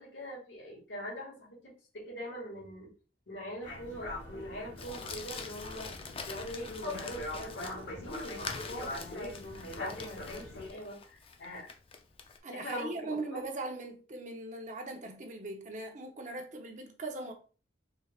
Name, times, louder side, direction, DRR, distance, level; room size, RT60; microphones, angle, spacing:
voice 1, 0.0-2.9 3.3-5.9 6.2-11.7 12.5-13.4, equal, 90° left, 1.9 m, -43 dB
sound 1, 3.6-10.7, left 2 dB, 70° left, 1.2 m, -42 dB
Crumpling crinkling, 4.8-12.4, left 5 dB, 30° left, 0.5 m, -45 dB
voice 2, 12.4-17.3, right 2 dB, 40° right, 0.7 m, -40 dB
4.5 x 3.3 x 2.4 m
head